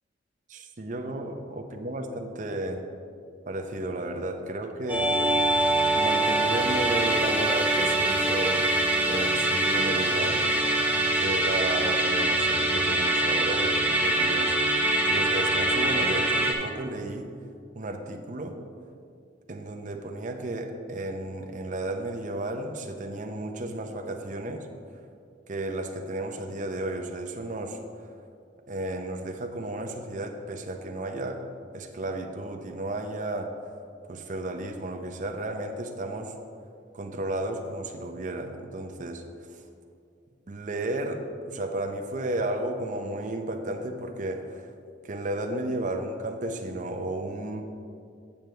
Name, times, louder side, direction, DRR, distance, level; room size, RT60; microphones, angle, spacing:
voice 1, 0.5-2.8 3.5-5.1 5.9-8.6 9.0-10.5 11.2-14.8 15.1-17.3 17.8-18.6 19.5-24.7 25.5-27.8 28.7-31.4 31.7-33.5 34.1-36.3 36.9-39.6 40.5-44.7 45.0-47.6, right 2 dB, 40° right, 4 dB, 0.6 m, -33 dB
Musical instrument, 4.9-16.5, right 2 dB, 10° right, 0.7 m, -24 dB
8.6 x 7.6 x 3.2 m, 2.4 s
head